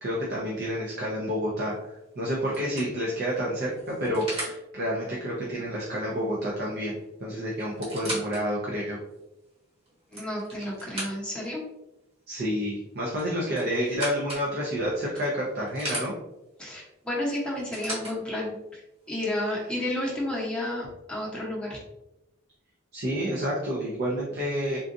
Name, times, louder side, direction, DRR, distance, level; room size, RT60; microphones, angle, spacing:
voice 1, 0.0-7.0 7.2-9.0 12.3-16.1 22.9-24.8, equal, 50° right, -4 dB, 0.6 m, -29 dB
sound 1, 1.6-1.9 2.5-4.6 6.6-6.7 7.0-7.1 7.6-8.4 9.0-9.1 9.9-11.5 13.1-14.5 15.1-16.1 17.3-18.1 19.1-19.2, right 1 dB, 25° right, 1.2 m, -37 dB
voice 2, 10.1-11.6 16.6-18.8 19.1-21.8, left 1 dB, 5° left, -5 dB, 0.9 m, -31 dB
3.8 x 2.4 x 2.6 m, 0.93 s
head